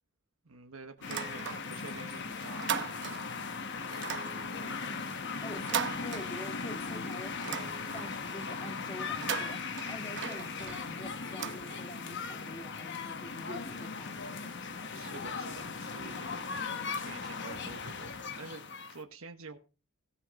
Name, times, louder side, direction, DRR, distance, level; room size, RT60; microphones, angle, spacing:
voice 1, 0.4-1.4 1.7-2.7 5.6-5.8 14.9-18.1 18.4-19.6, right 4 dB, 85° right, 5 dB, 1.1 m, -48 dB
sound 1, 1.0-19.0, left 5 dB, 55° left, 1.1 m, -38 dB
sound 2, 1.0-2.0 2.3-3.4 3.9-6.8 7.1-8.3 9.0-12.2, right 8 dB, 55° right, 0.8 m, -39 dB
voice 2, 4.3-14.9, left 1 dB, 20° left, 3 dB, 1.9 m, -46 dB
16.5 x 5.9 x 4.1 m, 0.33 s
head